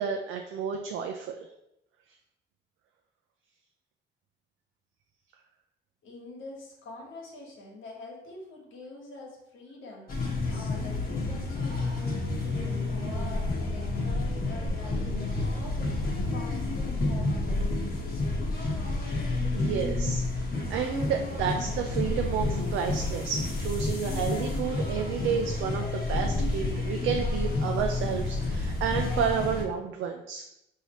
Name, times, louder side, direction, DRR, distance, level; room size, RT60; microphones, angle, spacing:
voice 1, 0.0-1.5 19.5-20.2 20.7-30.4, right 7 dB, 85° right, 3 dB, 0.4 m, -31 dB
voice 2, 6.0-18.0, left 3 dB, 80° left, -2 dB, 1.3 m, -45 dB
sound 1, 10.1-29.6, left 2 dB, 50° left, 1.0 m, -30 dB
5.6 x 2.7 x 3.0 m, 0.84 s
cardioid pair, 90°, 20 cm